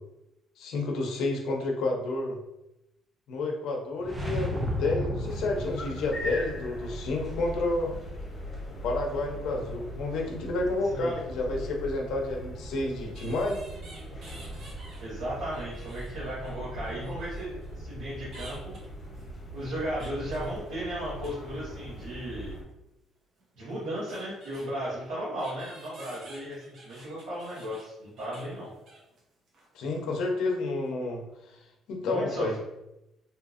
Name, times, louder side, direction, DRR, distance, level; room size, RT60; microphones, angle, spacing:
voice 1, 0.6-2.4 3.3-4.5 4.8-7.9 8.8-13.6 29.7-31.2 31.9-32.6, left 2 dB, 70° left, 1 dB, 0.6 m, -30 dB
sound 1, 4.0-6.2, left 1 dB, 15° right, 0.3 m, -32 dB
sound 2, 5.2-22.6, equal, 20° left, 0.9 m, -40 dB
sound 3, 12.3-12.4 13.2-15.1 15.4-17.7 18.3-21.4 21.7-22.1 23.4-23.5 23.7-24.7 25.4-29.2 29.5-29.7 30.0-30.1, right 2 dB, 50° right, 0.7 m, -51 dB
voice 2, 15.0-17.5 17.7-18.7 19.5-22.6 23.6-28.7 32.0-32.6, right 1 dB, 75° right, -11 dB, 1.2 m, -35 dB
2.7 x 2.5 x 2.4 m, 0.91 s
cardioid pair, 150°, 0 cm